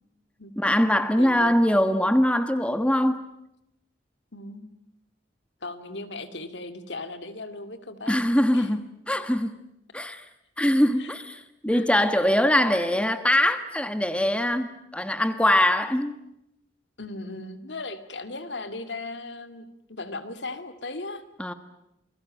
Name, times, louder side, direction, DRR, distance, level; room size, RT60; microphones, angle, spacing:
voice 1, 0.6-3.3 8.1-9.6 9.9-10.3 10.6-16.1 21.4-21.5, left 1 dB, 5° left, 1.3 m, -22 dB
voice 2, 1.2-1.6 4.3-4.7 5.6-8.2 8.5-8.7 11.0-11.1 11.6-11.9 17.0-21.2, left 2 dB, 65° left, 2.4 m, -37 dB
28.5 x 21.5 x 8.9 m
head